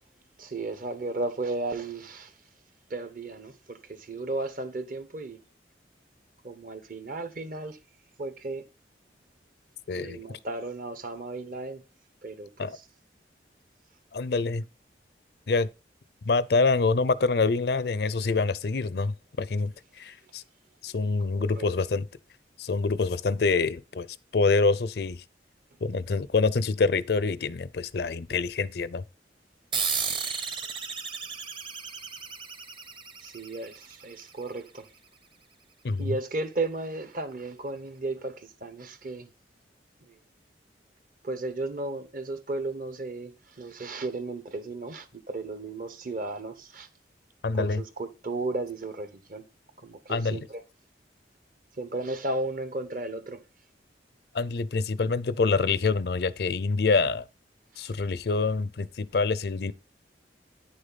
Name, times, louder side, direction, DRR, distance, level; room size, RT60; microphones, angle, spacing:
voice 1, 0.4-2.3 2.9-5.4 6.4-7.8 8.2-8.6 10.0-11.8 12.2-12.8 21.3-21.6 33.2-34.9 36.0-39.3 41.2-46.9 47.5-49.4 49.8-50.6 51.8-53.4 57.8-57.9, right 2 dB, 50° right, 1.1 m, -34 dB
voice 2, 9.9-10.2 12.6-12.8 14.1-14.6 15.5-15.7 16.3-19.7 20.0-20.4 20.8-22.1 22.6-24.1 24.3-25.2 25.8-29.0 35.8-36.2 47.4-47.8 50.1-50.4 54.3-57.2 57.8-59.7, left 4 dB, 60° left, 0.5 m, -26 dB
sound 1, 29.7-34.7, right 5 dB, 30° right, 0.9 m, -34 dB
9.5 x 6.5 x 4.0 m
head